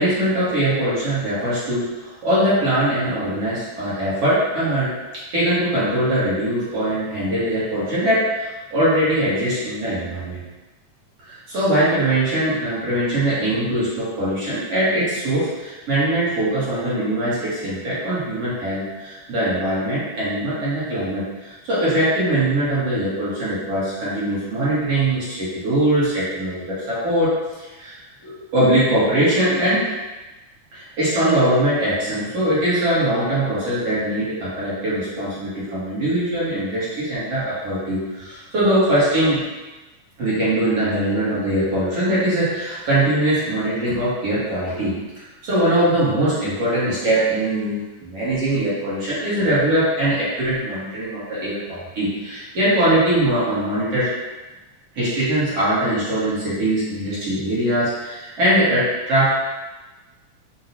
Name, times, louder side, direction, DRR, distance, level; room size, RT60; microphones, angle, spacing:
voice 1, 0.0-4.9 5.3-10.4 11.2-27.3 27.6-28.0 28.2-29.8 30.7-39.4 40.2-44.9 45.4-54.1 55.0-59.3, right 1 dB, 55° right, -10 dB, 2.1 m, -21 dB
5.8 x 2.5 x 2.7 m, 1.1 s
omnidirectional pair, 3.7 m